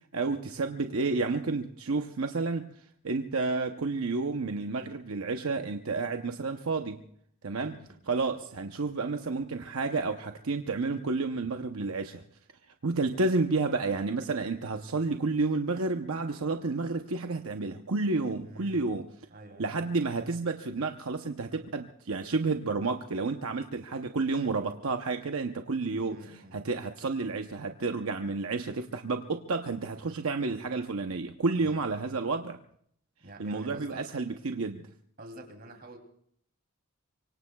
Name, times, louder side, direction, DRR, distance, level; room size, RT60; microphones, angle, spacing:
voice 1, 0.1-2.7 3.0-7.0 7.4-7.8 8.1-12.2 12.8-19.1 19.6-26.2 26.5-32.6 33.4-34.9, right 3 dB, 80° right, 5 dB, 0.8 m, -30 dB
voice 2, 7.5-8.0 18.4-18.9 19.3-19.7 26.1-26.6 31.6-32.0 33.2-34.1 35.2-36.0, right 1 dB, 45° right, 4 dB, 3.0 m, -48 dB
25.5 x 24.0 x 2.3 m, 0.64 s
head